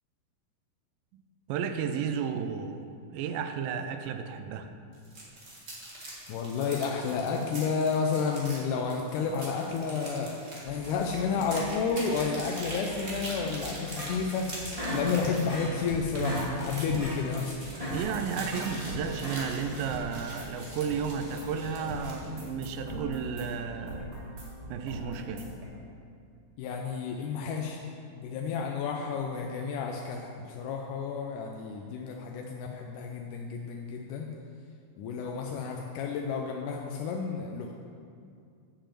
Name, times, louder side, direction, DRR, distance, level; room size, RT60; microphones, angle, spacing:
voice 1, 1.5-4.7 17.9-24.1 24.7-25.5, right 7 dB, 85° right, 8 dB, 2.3 m, -33 dB
sound 1, 4.9-22.3, right 1 dB, 35° right, 1.0 m, -43 dB
voice 2, 6.3-10.3 10.6-14.6 14.9-17.6 26.6-27.8 28.1-34.3 35.0-37.7, left 5 dB, 80° left, 1 dB, 1.9 m, -31 dB
sound 2, 10.7-25.7, equal, 70° right, 4.2 m, -42 dB
sound 3, 13.7-14.4 14.7-15.8 16.1-16.5 16.8-17.2 17.6-18.7 19.1-19.6, equal, 15° right, 1.3 m, -36 dB
7.3 x 6.9 x 7.6 m, 2.4 s
omnidirectional pair, 4.0 m